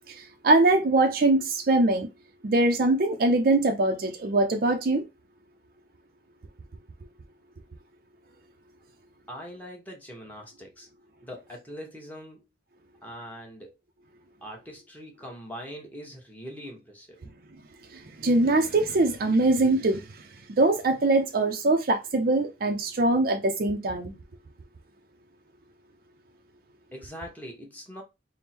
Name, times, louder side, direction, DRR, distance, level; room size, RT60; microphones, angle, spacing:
voice 1, 0.1-2.1 2.4-5.1 17.9-24.2, right 2 dB, 50° right, 0.5 m, -23 dB
voice 2, 9.3-10.9 11.2-12.4 13.0-13.7 14.4-17.4 26.9-28.0, equal, 10° left, 1.0 m, -42 dB
3.5 x 2.1 x 4.3 m
head